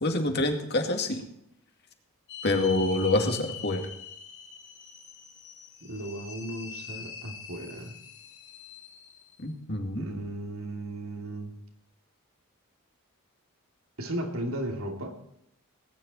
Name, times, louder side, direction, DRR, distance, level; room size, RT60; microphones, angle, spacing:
voice 1, 0.0-1.2 2.4-3.9 9.4-10.0, left 2 dB, 50° left, 4 dB, 2.2 m, -26 dB
sound 1, 2.3-9.4, left 5 dB, 70° left, 4.7 m, -44 dB
voice 2, 5.8-8.0 9.9-11.5 14.0-15.2, right 1 dB, 80° right, 2 dB, 2.8 m, -35 dB
19.0 x 10.0 x 4.3 m, 0.77 s
head